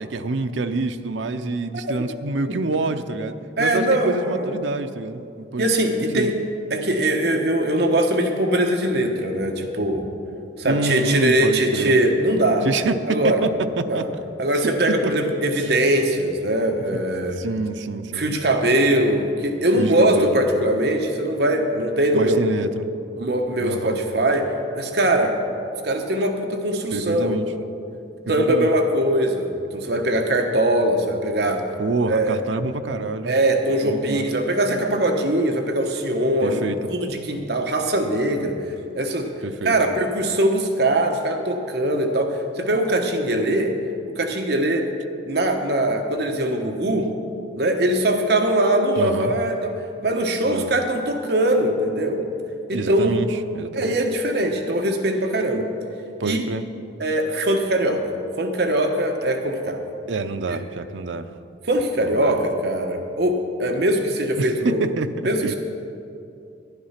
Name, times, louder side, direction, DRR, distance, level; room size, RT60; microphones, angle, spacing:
voice 1, 0.0-5.3 5.5-5.7 5.9-6.3 10.6-11.9 12.6-14.1 14.9-15.3 15.6-15.7 17.4-18.3 19.8-20.4 22.1-22.9 23.6-24.0 26.9-27.5 28.4-28.7 31.8-33.3 33.8-34.3 36.4-36.8 39.4-39.7 49.0-49.3 50.4-50.7 52.7-53.9 56.2-56.6 60.1-61.3 62.0-62.4 64.4-65.1 65.4-65.5, right 3 dB, 80° right, 9 dB, 0.6 m, -27 dB
voice 2, 3.6-4.5 5.6-6.4 6.7-10.1 10.6-12.7 13.1-13.4 13.9-14.0 14.4-17.4 18.1-22.5 23.2-24.5 24.7-25.4 25.8-27.4 28.3-31.6 32.1-32.4 33.2-38.6 38.9-39.3 39.6-43.7 44.2-44.9 45.3-47.1 47.6-49.7 50.0-52.2 52.7-53.2 53.7-55.6 56.2-56.4 57.0-58.0 58.4-59.8 60.5-60.6 61.7-64.8 65.2-65.4, right 1 dB, 60° right, 4 dB, 1.0 m, -21 dB
11.5 x 10.5 x 5.8 m, 2.6 s
head